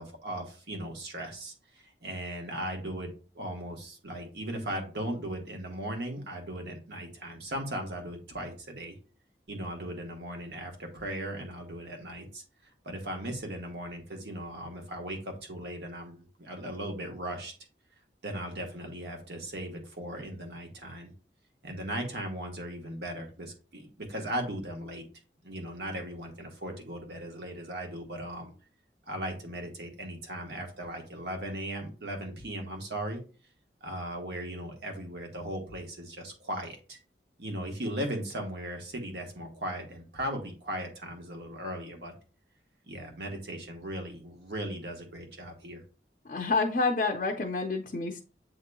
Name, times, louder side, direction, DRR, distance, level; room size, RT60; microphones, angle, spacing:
voice 1, 0.0-3.1 3.3-8.9 9.5-12.4 12.8-17.5 18.2-21.1 21.6-25.0 25.4-28.5 29.1-33.2 33.8-37.0 37.4-42.1 42.8-45.8, right 1 dB, 75° right, 2 dB, 1.2 m, -37 dB
voice 2, 46.2-48.2, left 3 dB, 50° left, 2 dB, 0.5 m, -28 dB
8.0 x 2.9 x 2.2 m, 0.37 s
head